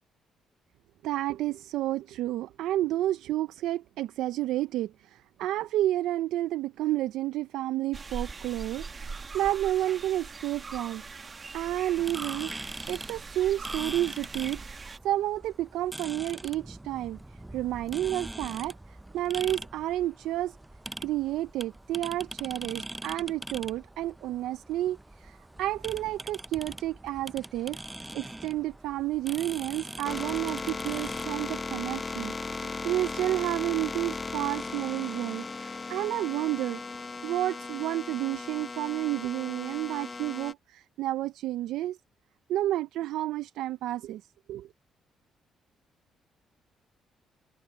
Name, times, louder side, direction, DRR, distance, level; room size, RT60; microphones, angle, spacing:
voice 1, 1.0-12.5 12.9-20.6 21.0-36.8 37.2-42.0 42.5-44.2 44.5-44.7, right 14 dB, 90° right, 0.4 m, -31 dB
sound 1, 7.9-15.0, right 4 dB, 35° right, 1.0 m, -41 dB
sound 2, 12.0-31.2, right 1 dB, 10° right, 0.4 m, -42 dB
sound 3, 30.0-40.5, left 3 dB, 30° left, 0.6 m, -37 dB
cardioid pair, 90°, 0 cm